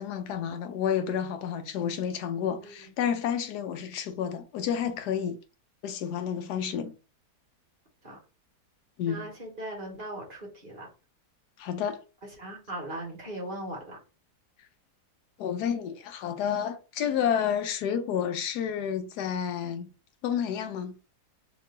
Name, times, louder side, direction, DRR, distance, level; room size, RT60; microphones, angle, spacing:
voice 1, 0.0-5.4 5.8-6.9 9.0-9.3 11.6-12.0 15.4-19.9 20.2-20.9, left 8 dB, 75° left, 1.2 m, -30 dB
voice 2, 9.1-10.9 12.4-14.0, right 1 dB, 35° right, 1.2 m, -39 dB
3.0 x 3.0 x 3.6 m
omnidirectional pair, 1.8 m